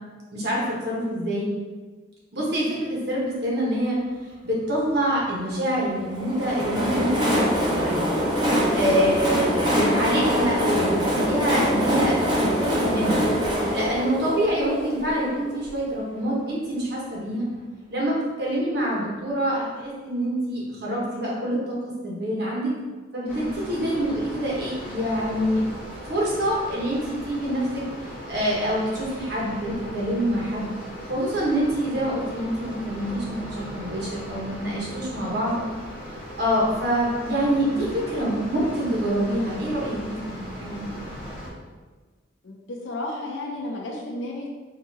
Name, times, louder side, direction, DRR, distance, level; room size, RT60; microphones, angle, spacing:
voice 1, 0.3-1.5 2.3-4.0 4.4-8.1 8.7-13.3 13.7-17.4 17.9-22.7 23.1-25.7 26.1-27.9 28.3-30.7 31.1-35.6 36.4-41.1, equal, 55° right, -4 dB, 1.2 m, -26 dB
Train, 6.1-15.8, equal, 25° right, 0.8 m, -24 dB
sound 1, 23.3-41.5, equal, 5° left, 1.2 m, -38 dB
voice 2, 42.4-44.5, left 1 dB, 75° left, -1 dB, 0.8 m, -33 dB
5.1 x 2.7 x 2.8 m, 1.3 s
head